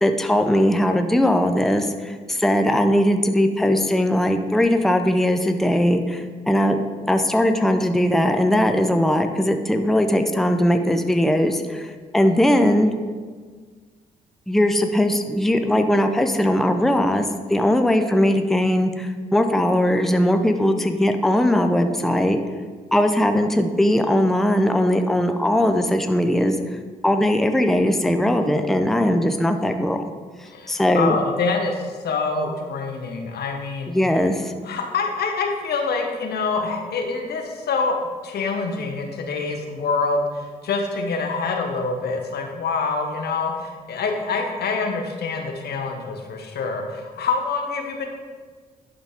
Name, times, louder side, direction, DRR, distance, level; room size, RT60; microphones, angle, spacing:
voice 1, 0.0-12.9 14.5-22.4 22.9-26.6 27.0-30.0 30.7-31.2 33.9-34.5, left 1 dB, ahead, 6 dB, 0.6 m, -19 dB
voice 2, 30.4-34.0 34.6-38.0 38.2-48.1, left 4 dB, 70° left, 3 dB, 1.1 m, -26 dB
11.5 x 4.0 x 3.6 m, 1.5 s
supercardioid pair, 50°, 17 cm